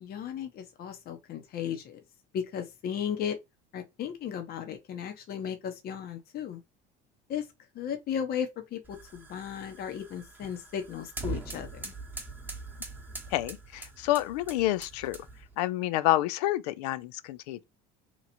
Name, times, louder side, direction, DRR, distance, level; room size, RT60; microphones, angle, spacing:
voice 1, 0.0-2.0 2.3-3.4 3.7-6.6 7.3-7.4 7.7-11.9, left 8 dB, 50° left, 0.9 m, -35 dB
sound 1, 8.8-15.5, right 3 dB, 10° right, 1.0 m, -42 dB
voice 2, 13.3-15.2 15.6-17.6, left 16 dB, 85° left, 0.4 m, -28 dB
3.0 x 2.4 x 4.1 m
supercardioid pair, 90°, 20 cm